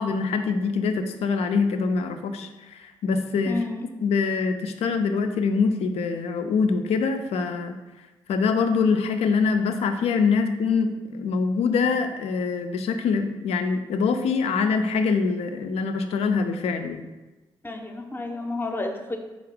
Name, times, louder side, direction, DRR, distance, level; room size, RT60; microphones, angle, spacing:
voice 1, 0.0-3.6 4.0-7.8 8.3-17.0, left 5 dB, 70° left, 7 dB, 0.4 m, -24 dB
voice 2, 3.4-3.8 17.6-19.2, left 2 dB, 20° left, 4 dB, 0.5 m, -30 dB
3.8 x 2.4 x 3.4 m, 1.1 s
hypercardioid pair, 45°, 11 cm